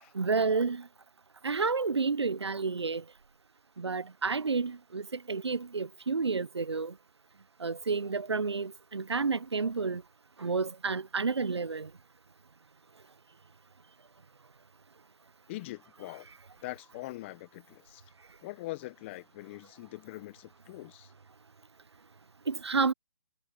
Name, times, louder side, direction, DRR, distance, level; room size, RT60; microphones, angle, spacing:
voice 1, 0.1-0.8 1.4-3.0 3.8-6.9 7.6-10.0 10.4-11.9 22.5-22.9, right 4 dB, 85° right, 0.9 m, -30 dB
voice 2, 15.5-16.3 16.6-18.0 18.4-21.1, left 19 dB, 25° left, 1.2 m, -43 dB
figure-of-eight pair, 145°, 14 cm